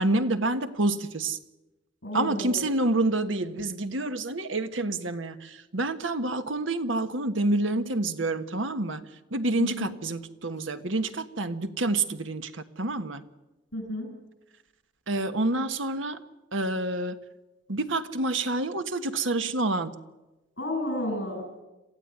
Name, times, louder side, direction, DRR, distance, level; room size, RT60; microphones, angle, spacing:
voice 1, 0.0-1.4 2.1-9.0 9.3-13.3 15.1-16.2 16.5-17.2 17.7-19.9, right 2 dB, 85° right, 10 dB, 1.4 m, -28 dB
voice 2, 2.0-2.6 9.6-9.9 13.7-14.1 20.6-21.4, left 1 dB, 65° left, 3 dB, 7.7 m, -32 dB
27.0 x 15.5 x 9.4 m, 1.1 s
head